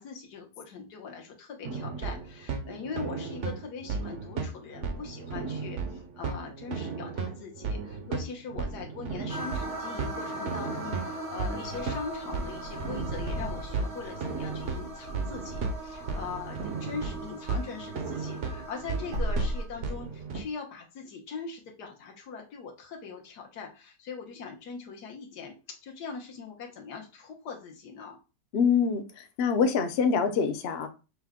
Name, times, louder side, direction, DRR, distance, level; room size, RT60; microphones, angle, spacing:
voice 1, 0.0-28.2, left 5 dB, 80° left, 1 dB, 1.5 m, -41 dB
sound 1, 1.6-20.4, right 4 dB, 55° right, 0.9 m, -35 dB
sound 2, 9.3-19.6, right 1 dB, 35° right, 0.5 m, -40 dB
Wind / Car, 11.7-17.4 17.8-20.2, equal, 80° right, 2.1 m, -38 dB
voice 2, 28.5-30.9, left 6 dB, 55° left, 7 dB, 0.7 m, -25 dB
5.8 x 2.2 x 3.5 m, 0.31 s
omnidirectional pair, 1.7 m